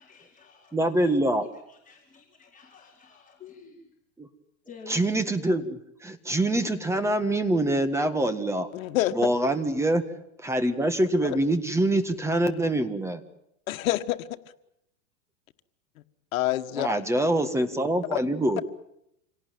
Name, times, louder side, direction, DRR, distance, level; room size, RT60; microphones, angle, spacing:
voice 1, 0.0-3.9 4.6-5.3, left 4 dB, 20° left, -1 dB, 4.3 m, -50 dB
voice 2, 0.7-1.5 4.2-4.3 4.9-8.7 9.1-10.0 10.4-13.2 16.7-18.6, right 1 dB, 5° right, 10 dB, 1.8 m, -25 dB
voice 3, 8.7-9.2 13.7-14.2 16.3-16.9, left 15 dB, 75° left, 9 dB, 1.7 m, -26 dB
27.0 x 18.0 x 9.4 m, 0.80 s
supercardioid pair, 135°, 41 cm